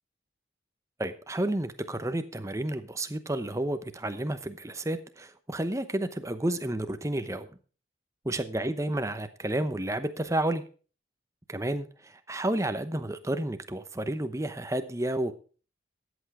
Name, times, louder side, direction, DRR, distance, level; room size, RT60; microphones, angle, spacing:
voice 1, 1.0-7.5 8.2-10.6 11.5-15.3, right 1 dB, 15° right, 10 dB, 0.8 m, -31 dB
13.5 x 8.1 x 4.8 m, 0.38 s
head